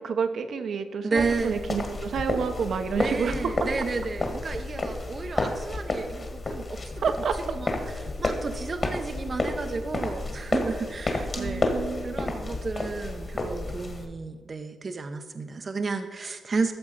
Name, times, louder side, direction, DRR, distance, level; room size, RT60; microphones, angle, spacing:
voice 1, 0.0-3.5 7.0-7.4 11.3-12.1, right 6 dB, 65° right, 7 dB, 0.9 m, -29 dB
voice 2, 1.0-1.6 2.9-7.1 7.4-11.7 12.0-16.7, right 4 dB, 35° right, 6 dB, 0.7 m, -32 dB
sound 1, 1.2-14.1, left 2 dB, 35° left, 2.0 m, -31 dB
13.0 x 7.2 x 5.6 m, 1.5 s
cardioid pair, 105°, 0 cm